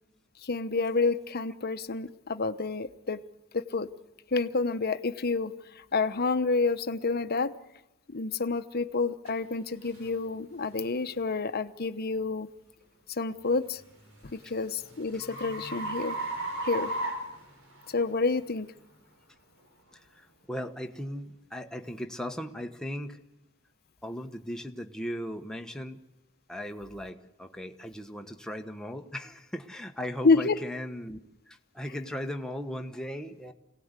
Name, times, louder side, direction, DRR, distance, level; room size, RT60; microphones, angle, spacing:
voice 1, 0.4-3.2 3.5-3.9 4.3-7.5 8.1-12.5 13.1-13.8 14.3-16.2 16.6-16.9 17.9-18.7 30.2-30.6, left 4 dB, 50° left, 11 dB, 1.0 m, -29 dB
sound 1, 9.3-9.4 9.9-10.1 10.7-10.9 13.6-18.1, right 2 dB, 80° right, 5.1 m, -36 dB
voice 2, 19.9-23.2 24.0-26.0 26.5-31.2 31.5-33.5, equal, 5° left, 4 dB, 1.2 m, -37 dB
26.0 x 18.0 x 8.2 m, 0.97 s
head